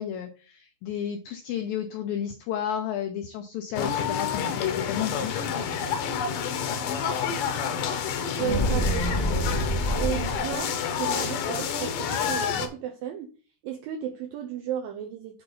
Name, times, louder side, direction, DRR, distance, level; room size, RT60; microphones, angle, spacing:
voice 1, 0.0-5.5, left 9 dB, 85° left, 6 dB, 2.0 m, -32 dB
sound 1, 3.7-12.7, left 7 dB, 70° left, 2.1 m, -29 dB
voice 2, 8.2-9.4 10.0-13.3 13.6-15.4, right 10 dB, 80° right, 3 dB, 2.1 m, -34 dB
sound 2, 8.4-10.6, equal, 15° left, 1.0 m, -27 dB
8.7 x 3.9 x 5.3 m, 0.37 s
omnidirectional pair, 5.1 m